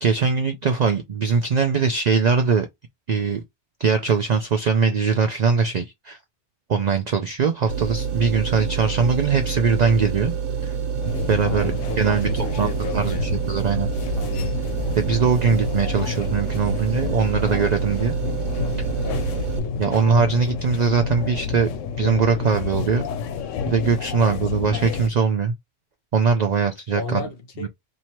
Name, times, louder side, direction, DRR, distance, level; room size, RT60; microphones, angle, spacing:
voice 1, 0.0-2.7 3.1-3.4 3.8-6.2 6.7-10.3 10.6-10.7 11.3-11.7 12.0-13.9 15.0-18.2 19.8-21.7 22.0-23.1 23.7-25.5 26.1-27.2 27.6-27.7, right 5 dB, 60° right, 0.4 m, -21 dB
sound 1, 7.7-19.6, right 7 dB, 90° right, 1.1 m, -27 dB
sound 2, 11.0-25.1, left 6 dB, 85° left, 0.9 m, -29 dB
voice 2, 11.5-13.3 14.2-14.5 19.0-19.8 27.0-27.7, left 5 dB, 55° left, 0.9 m, -34 dB
3.0 x 2.7 x 4.3 m
omnidirectional pair, 1.3 m